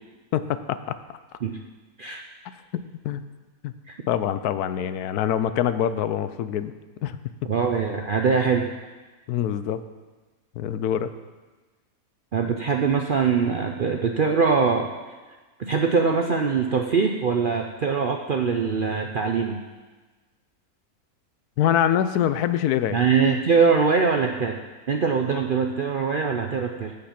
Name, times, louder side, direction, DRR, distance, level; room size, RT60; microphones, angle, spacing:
voice 1, 0.3-1.2 3.0-3.2 3.6-3.7 4.1-6.7 7.0-7.2 9.3-9.8 10.6-11.1 21.6-23.0, left 10 dB, 80° left, 12 dB, 1.1 m, -24 dB
voice 2, 7.5-8.7 12.3-14.9 15.6-19.6 22.9-24.6 24.9-26.9, right 5 dB, 55° right, 3 dB, 0.5 m, -22 dB
15.0 x 5.4 x 5.9 m, 1.3 s
omnidirectional pair, 1.6 m